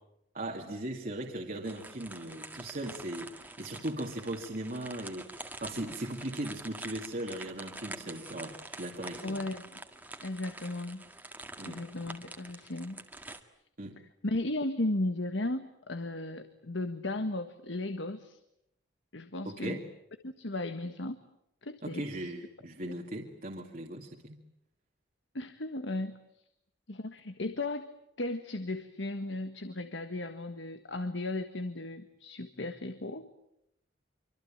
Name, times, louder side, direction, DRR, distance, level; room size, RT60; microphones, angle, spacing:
voice 1, 0.3-9.4 11.6-11.8 13.8-13.9 19.4-19.9 21.8-24.4, right 1 dB, 50° right, 0 dB, 2.3 m, -38 dB
sound 1, 1.6-13.4, right 2 dB, 10° right, 1.9 m, -46 dB
voice 2, 9.2-9.8 10.2-11.0 11.7-13.0 14.2-18.4 19.1-19.8 20.2-21.2 21.6-22.3 22.8-23.0 25.3-26.2 26.9-27.9 28.2-33.3, left 2 dB, 75° left, 9 dB, 1.6 m, -35 dB
26.0 x 25.0 x 8.8 m, 0.80 s
head